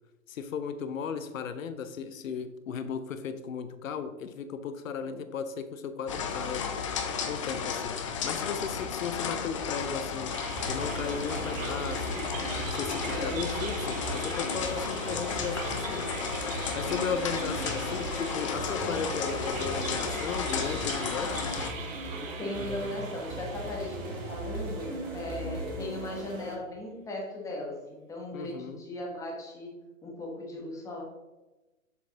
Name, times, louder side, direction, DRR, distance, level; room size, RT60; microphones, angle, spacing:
voice 1, 0.3-6.7 7.3-8.0 8.2-10.4 10.7-12.1 12.7-16.1 16.4-21.3 28.3-28.8, left 6 dB, 65° left, 10 dB, 0.7 m, -36 dB
sound 1, 6.1-21.7, left 6 dB, 25° left, 0.5 m, -34 dB
sound 2, 10.3-25.6, right 6 dB, 65° right, 1.0 m, -43 dB
sound 3, 10.5-26.5, right 1 dB, 30° right, 1.5 m, -37 dB
voice 2, 22.4-29.7 30.0-31.0, left 1 dB, 5° left, -1 dB, 1.0 m, -38 dB
7.0 x 4.7 x 3.8 m, 1.1 s
hypercardioid pair, 130°, 42 cm